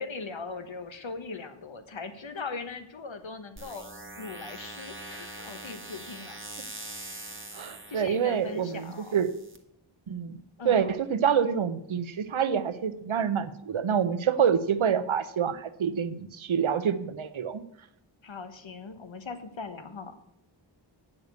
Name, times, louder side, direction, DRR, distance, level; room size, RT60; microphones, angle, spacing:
voice 1, 0.0-3.9 4.2-6.4 7.9-9.2 10.6-11.0 18.2-20.1, left 4 dB, 75° left, 9 dB, 1.2 m, -40 dB
sound 1, 3.6-9.6, right 1 dB, 25° right, 1.4 m, -43 dB
voice 2, 7.5-9.3 10.1-10.4 10.6-17.6, right 7 dB, 80° right, 13 dB, 0.8 m, -27 dB
8.5 x 6.7 x 8.1 m, 0.79 s
wide cardioid pair, 65°, 47 cm